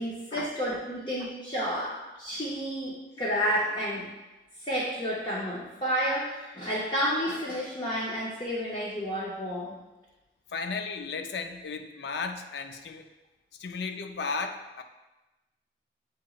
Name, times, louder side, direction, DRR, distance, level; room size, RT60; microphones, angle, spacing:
voice 1, 0.0-4.1 4.6-9.8, equal, 25° left, -7 dB, 0.6 m, -31 dB
voice 2, 10.5-13.1 13.5-14.8, left 4 dB, 75° left, 7 dB, 0.4 m, -35 dB
7.2 x 2.9 x 2.3 m, 1.1 s
head